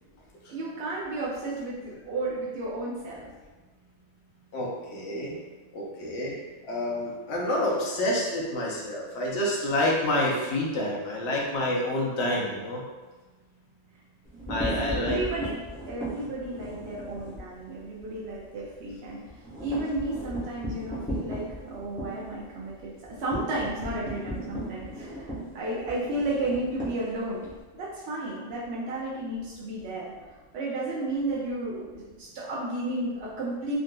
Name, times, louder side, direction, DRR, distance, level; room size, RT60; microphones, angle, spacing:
voice 1, 0.5-3.2 14.3-15.5 15.9-19.2 19.6-30.1 30.5-33.7, right 2 dB, 65° right, -6 dB, 0.7 m, -33 dB
voice 2, 4.5-5.3 5.7-6.4 6.7-12.8 14.5-15.2, left 1 dB, 60° left, -3 dB, 0.9 m, -28 dB
sound 1, 14.2-17.5 17.8-18.0 18.3-18.4 18.7-27.6, equal, 5° left, 0.8 m, -36 dB
3.6 x 2.5 x 2.2 m, 1.3 s
omnidirectional pair, 1.3 m